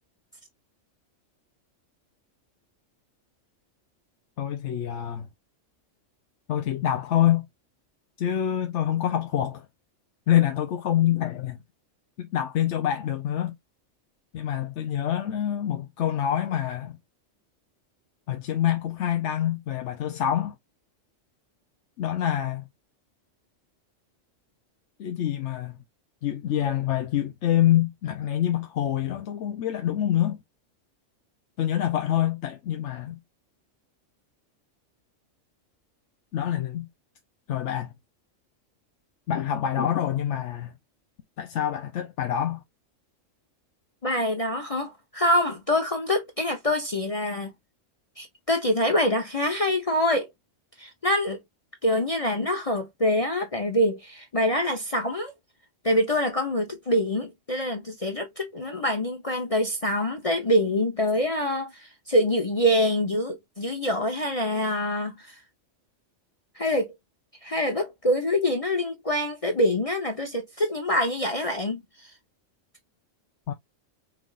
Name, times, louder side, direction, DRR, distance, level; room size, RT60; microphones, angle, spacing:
voice 1, 4.4-5.3 6.5-7.5 8.2-9.7 10.3-11.6 12.2-13.5 14.3-17.0 18.3-20.6 22.0-22.7 25.0-25.8 26.2-30.4 31.6-33.2 36.3-36.9 37.5-37.9 39.3-40.7 41.4-42.6 73.5-73.6, left 11 dB, 70° left, 1.0 m, -26 dB
voice 2, 44.0-47.5 48.2-50.3 50.8-51.4 51.8-55.3 55.8-65.4 66.6-66.9 67.4-72.1, left 1 dB, 30° left, 0.9 m, -25 dB
6.0 x 3.5 x 2.4 m
omnidirectional pair, 1.3 m